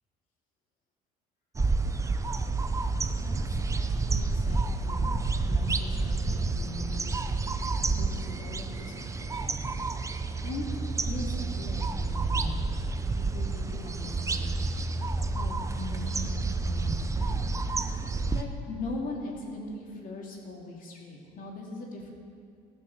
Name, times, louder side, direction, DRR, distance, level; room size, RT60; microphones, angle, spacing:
sound 1, 1.5-18.4, right 3 dB, 20° right, 0.6 m, -29 dB
voice 1, 3.7-7.2 7.9-9.6 10.4-14.5 15.3-17.5 18.3-22.1, left 2 dB, 50° left, -1 dB, 2.8 m, -40 dB
16.0 x 6.1 x 7.3 m, 2.3 s
supercardioid pair, 100°, 17 cm